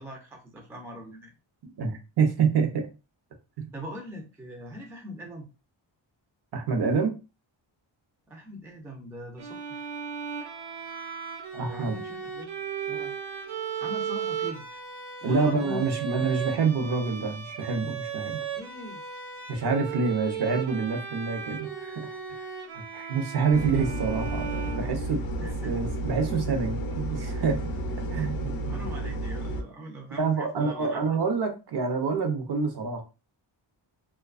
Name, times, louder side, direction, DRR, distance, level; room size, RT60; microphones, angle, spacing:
voice 1, 0.0-1.3 3.7-5.5 8.3-9.9 11.7-12.6 12.9-13.1 13.8-14.8 15.2-16.0 18.5-19.0 25.4-25.7 28.7-31.2, equal, 5° right, 0.3 m, -41 dB
voice 2, 1.8-2.9 3.6-3.7 6.5-7.2 11.5-12.0 15.2-18.4 19.5-22.5 22.7-25.2 25.6-27.6 28.1-28.9 30.2-33.0, right 5 dB, 55° right, 0.6 m, -27 dB
Bowed string instrument, 9.4-25.5, right 7 dB, 85° right, 0.9 m, -36 dB
sound 1, 23.5-29.6, right 1 dB, 50° left, 0.5 m, -32 dB
2.6 x 2.2 x 2.3 m
wide cardioid pair, 165°, 47 cm